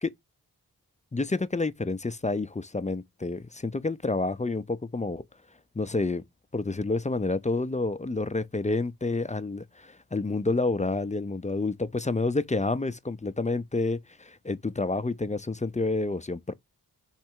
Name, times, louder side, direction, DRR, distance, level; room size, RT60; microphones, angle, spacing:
voice 1, 1.1-5.2 5.8-6.2 6.5-16.5, left 3 dB, 20° left, 0.5 m, -29 dB
3.6 x 3.3 x 4.5 m
cardioid pair, 40°, 41 cm